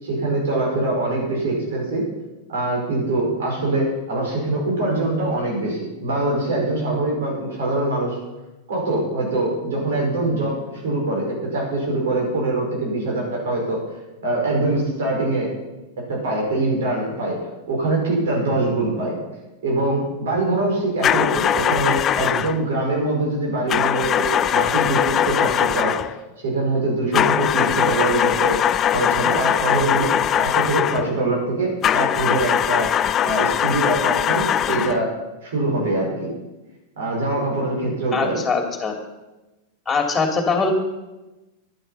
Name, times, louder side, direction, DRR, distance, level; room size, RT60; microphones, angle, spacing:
voice 1, 0.0-2.0 2.5-8.2 8.7-13.8 14.2-15.5 16.1-17.4 17.7-19.1 19.6-28.6 28.9-30.1 30.4-32.9 33.2-35.1 35.4-36.3 37.0-38.4, right 2 dB, 65° right, -2 dB, 5.2 m, -23 dB
sound 1, 21.0-22.6 23.7-26.2 27.1-31.1 31.8-35.1, left 10 dB, 30° left, 0.4 m, -21 dB
voice 2, 38.1-39.0 39.9-40.7, left 4 dB, 15° left, 4 dB, 2.8 m, -22 dB
11.0 x 11.0 x 5.7 m, 1.1 s
figure-of-eight pair, 95°, 0 cm